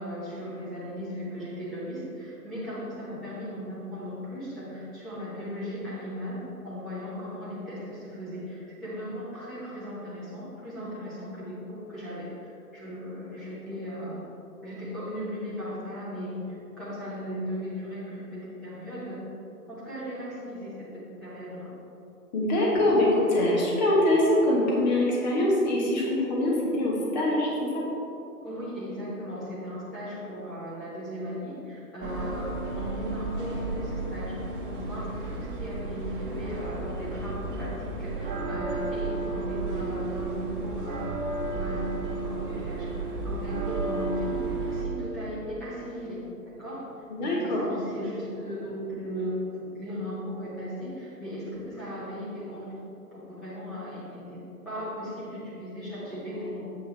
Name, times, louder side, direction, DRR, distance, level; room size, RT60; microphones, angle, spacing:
voice 1, 0.0-14.3 14.6-19.2 19.7-21.7 28.4-41.0 41.5-46.9 47.2-52.7 53.1-54.4 54.6-56.6, equal, ahead, -12 dB, 0.7 m, -37 dB
voice 2, 22.3-27.5 27.7-27.8 47.1-47.6, left 1 dB, 25° left, -4 dB, 1.5 m, -23 dB
sound 1, 32.0-44.8, right 3 dB, 35° right, 1.2 m, -32 dB
8.2 x 8.2 x 3.4 m, 3.0 s
figure-of-eight pair, 130°, 48 cm